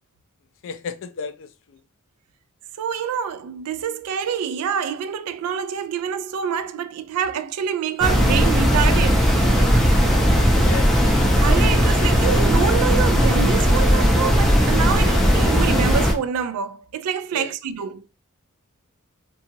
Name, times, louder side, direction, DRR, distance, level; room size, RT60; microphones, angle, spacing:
voice 1, 0.6-1.8 10.6-10.9 17.3-17.5, left 6 dB, 60° left, 0.4 m, -34 dB
voice 2, 2.8-9.7 11.4-18.0, right 7 dB, 80° right, 0.3 m, -26 dB
sound 1, 8.0-16.1, equal, ahead, 0.5 m, -17 dB
2.8 x 2.3 x 2.6 m
head